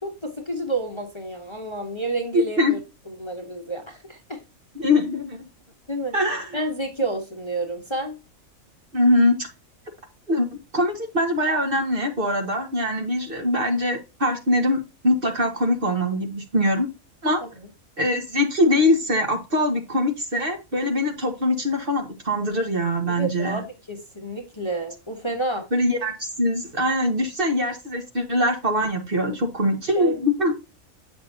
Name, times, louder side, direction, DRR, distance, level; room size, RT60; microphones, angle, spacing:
voice 1, 0.0-2.8 3.1-4.4 5.9-6.1 6.5-8.2 17.4-17.7 23.1-25.7 29.3-29.4 30.0-30.2, right 2 dB, 20° left, 2 dB, 1.2 m, -30 dB
voice 2, 2.3-2.8 4.7-5.5 6.1-6.6 8.9-9.5 10.3-10.5 10.7-16.9 17.2-17.4 18.0-23.6 25.7-26.1 26.4-30.5, left 1 dB, 45° right, 4 dB, 1.5 m, -22 dB
8.2 x 6.0 x 2.7 m, 0.27 s
omnidirectional pair, 1.4 m